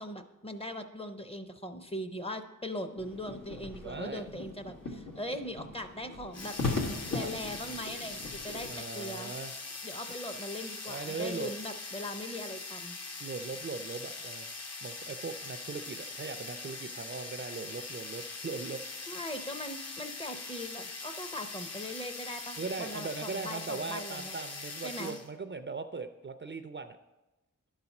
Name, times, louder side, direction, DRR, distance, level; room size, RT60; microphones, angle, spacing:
voice 1, 0.0-6.6 7.1-9.4 9.8-13.0 19.1-24.3 24.8-25.2, left 1 dB, 20° left, 7 dB, 0.6 m, -40 dB
sound 1, 3.0-8.7, left 3 dB, 90° left, 1.4 m, -38 dB
voice 2, 3.8-4.3 7.1-7.3 8.7-9.9 10.9-11.5 13.2-14.5 14.8-19.1 22.6-27.0, right 4 dB, 35° right, 9 dB, 0.4 m, -39 dB
sound 2, 6.3-25.3, left 3 dB, 50° left, 0.8 m, -42 dB
11.5 x 4.1 x 5.9 m, 1.0 s
wide cardioid pair, 110°, 32 cm